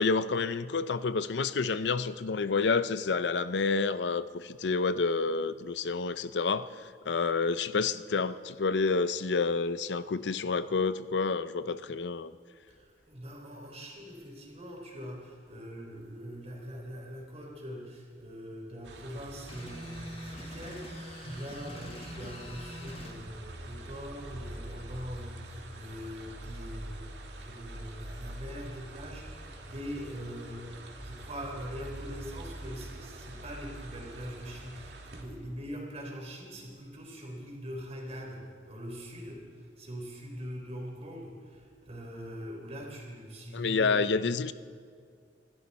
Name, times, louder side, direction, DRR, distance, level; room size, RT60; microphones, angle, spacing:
voice 1, 0.0-12.3 43.5-44.5, left 4 dB, 80° left, 14 dB, 0.5 m, -29 dB
voice 2, 12.7-44.3, equal, 40° right, 0 dB, 3.8 m, -42 dB
sound 1, 18.8-35.2, right 1 dB, 85° right, 1.9 m, -45 dB
sound 2, 19.5-23.2, left 1 dB, 35° left, 1.8 m, -44 dB
26.5 x 12.5 x 4.2 m, 2.1 s
head